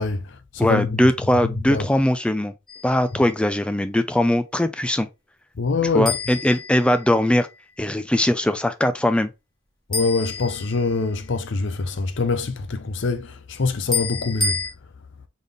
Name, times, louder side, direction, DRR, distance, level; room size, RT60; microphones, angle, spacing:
voice 1, 0.0-1.1 1.7-1.8 5.6-6.2 9.9-14.6, left 3 dB, 60° left, 0.6 m, -24 dB
voice 2, 0.6-2.5 2.8-5.1 5.9-7.5 7.8-9.3, left 1 dB, 5° left, 0.4 m, -20 dB
sound 1, 2.7-3.1 6.1-7.4 9.9-11.2 13.9-14.7, left 4 dB, 20° left, 1.8 m, -29 dB
4.0 x 3.5 x 3.4 m
head